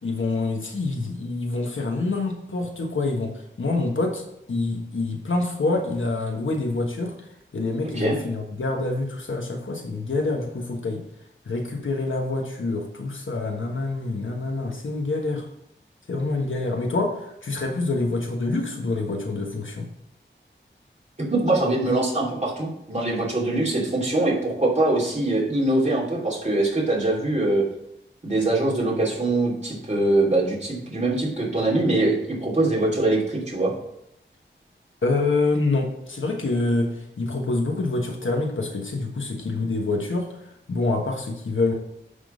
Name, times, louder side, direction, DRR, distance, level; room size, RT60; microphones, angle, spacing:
voice 1, 0.0-3.3 3.6-7.3 7.5-11.0 11.5-15.5 16.1-19.9 35.0-41.7, left 3 dB, 75° left, 2 dB, 1.3 m, -26 dB
voice 2, 21.3-27.6 28.2-32.2 32.4-33.7, right 2 dB, 35° right, -4 dB, 2.9 m, -23 dB
9.9 x 3.8 x 5.1 m, 0.78 s
wide cardioid pair, 80°, 20 cm